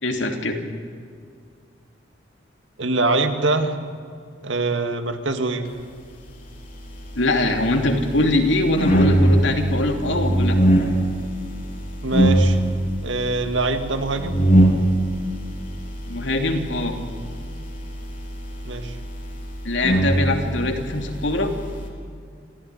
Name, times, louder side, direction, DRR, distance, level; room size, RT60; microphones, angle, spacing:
voice 1, 0.0-0.6 7.1-10.6 16.1-17.0 19.6-21.5, left 2 dB, 75° left, 4 dB, 2.9 m, -22 dB
voice 2, 2.8-3.7 4.4-5.7 12.0-12.6 13.0-14.4 18.7-18.9, right 3 dB, 80° right, 6 dB, 2.1 m, -23 dB
sound 1, 6.5-21.9, right 1 dB, 45° left, 3.8 m, -23 dB
27.5 x 15.5 x 9.9 m, 2.2 s
head